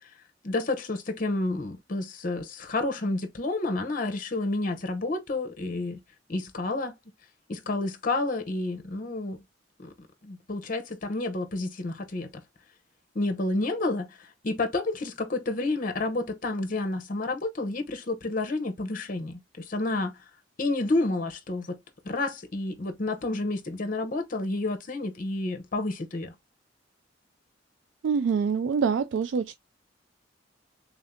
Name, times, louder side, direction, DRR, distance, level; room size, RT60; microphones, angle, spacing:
voice 1, 0.4-6.0 6.3-6.9 7.5-9.4 9.8-9.9 10.2-12.4 13.1-20.2 20.6-21.8 22.0-26.3, left 2 dB, 45° left, 0.7 m, -30 dB
voice 2, 28.0-29.5, right 6 dB, 70° right, 0.3 m, -25 dB
3.5 x 2.7 x 3.5 m
head